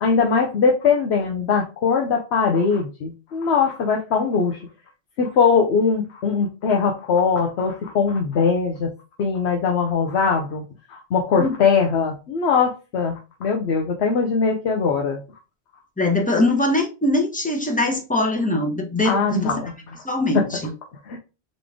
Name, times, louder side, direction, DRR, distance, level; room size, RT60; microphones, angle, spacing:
voice 1, 0.0-4.6 5.2-8.9 9.2-10.6 10.9-15.2 19.0-19.7 21.0-21.2, left 5 dB, 80° left, 1.0 m, -21 dB
voice 2, 16.0-19.6 20.0-20.7, left 2 dB, 10° left, 0.8 m, -22 dB
4.1 x 3.3 x 3.4 m
omnidirectional pair, 1.1 m